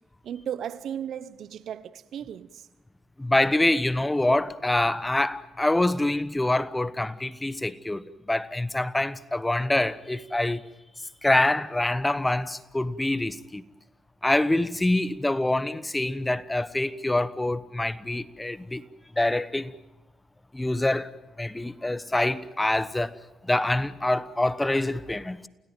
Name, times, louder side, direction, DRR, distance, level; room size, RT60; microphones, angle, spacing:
voice 1, 0.2-2.5, right 9 dB, 70° right, 1.0 m, -35 dB
voice 2, 3.2-10.6 11.2-13.6 14.2-18.8 19.2-19.7 20.5-21.1 21.4-23.1 23.4-25.5, left 1 dB, 10° left, 1.1 m, -25 dB
29.5 x 17.5 x 9.1 m
cardioid pair, 90°, 0 cm